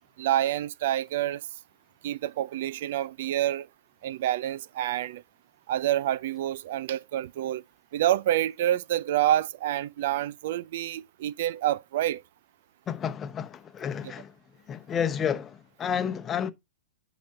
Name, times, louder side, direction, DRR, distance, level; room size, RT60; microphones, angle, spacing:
voice 1, 0.2-1.4 2.0-3.7 4.0-5.2 5.7-7.6 7.9-12.2 14.0-14.1, right 12 dB, 60° right, 0.4 m, -27 dB
voice 2, 12.9-14.3 14.7-16.5, left 8 dB, 20° left, 0.9 m, -30 dB
10.5 x 4.1 x 5.5 m
hypercardioid pair, 135°, 0 cm